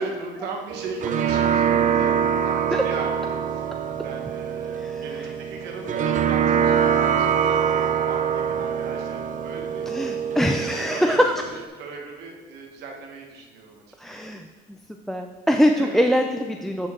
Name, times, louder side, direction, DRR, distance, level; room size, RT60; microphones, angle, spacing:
voice 1, 0.0-2.1 2.4-3.7 4.0-7.6 8.0-9.9 10.7-13.8 14.2-14.3 15.7-16.0, right 4 dB, 80° right, 1 dB, 1.3 m, -37 dB
sound 1, 0.7-11.6, right 8 dB, 50° right, 0.6 m, -24 dB
voice 2, 9.9-11.3 14.0-14.4 15.1-16.9, equal, ahead, 4 dB, 0.4 m, -22 dB
11.5 x 4.5 x 3.7 m, 1.4 s
cardioid pair, 110°, 17 cm